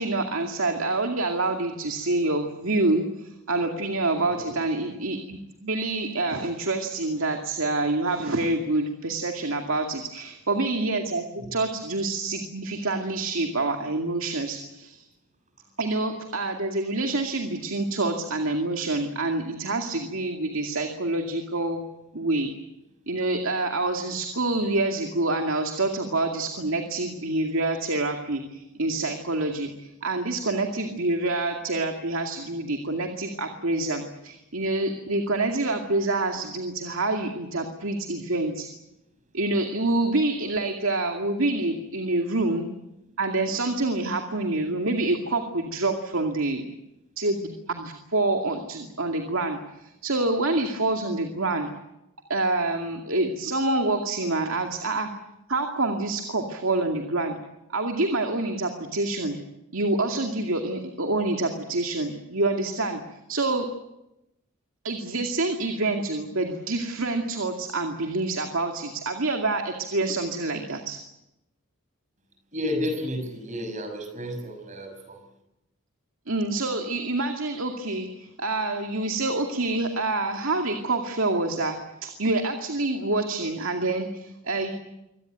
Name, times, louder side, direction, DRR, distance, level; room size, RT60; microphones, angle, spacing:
voice 1, 0.0-15.1 15.8-21.8 22.1-22.5 23.1-38.7 39.3-42.7 43.2-46.7 47.2-51.7 52.3-55.1 55.5-57.4 57.7-59.4 59.7-63.0 63.3-63.7 64.8-71.0 76.3-84.7, right 2 dB, 65° right, 4 dB, 2.4 m, -27 dB
voice 2, 72.5-75.2, left 1 dB, 35° right, 6 dB, 6.1 m, -32 dB
25.5 x 18.0 x 9.4 m, 0.88 s
head